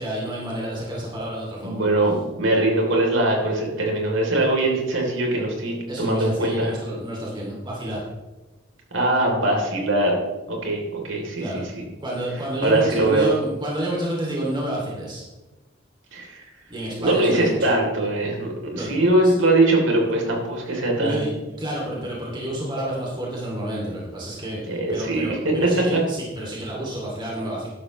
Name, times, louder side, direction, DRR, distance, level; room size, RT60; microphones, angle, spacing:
voice 1, 0.0-1.8 5.9-8.0 11.4-11.6 12.0-15.2 16.7-17.6 18.7-19.0 19.2-19.3 21.0-21.3 21.6-27.7, right 1 dB, 25° right, -4 dB, 2.9 m, -29 dB
voice 2, 1.6-6.7 8.9-10.2 10.5-11.8 12.6-13.3 16.1-16.4 17.0-21.4 24.7-25.5 25.9-26.0, right 2 dB, 90° right, 0 dB, 3.6 m, -22 dB
13.5 x 11.5 x 3.3 m, 1.1 s
head